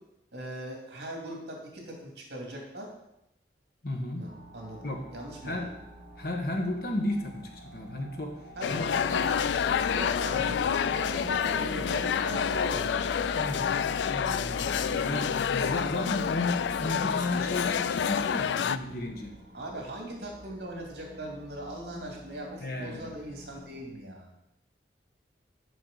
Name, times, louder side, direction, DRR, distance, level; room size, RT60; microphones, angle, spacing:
voice 1, 0.3-2.9 4.1-4.3 4.5-5.6 8.6-13.7 14.8-15.4 19.5-24.3, right 1 dB, 65° right, 0 dB, 2.4 m, -40 dB
voice 2, 3.8-4.3 4.8-5.0 5.4-5.7 6.2-8.9 13.3-13.6 14.1-19.4 22.6-23.1, left 1 dB, 55° left, 2 dB, 1.3 m, -34 dB
sound 1, 4.2-23.9, right 1 dB, 45° right, 2.1 m, -46 dB
sound 2, 8.6-18.8, left 7 dB, 80° left, 0.3 m, -28 dB
6.4 x 5.5 x 6.6 m, 0.86 s
head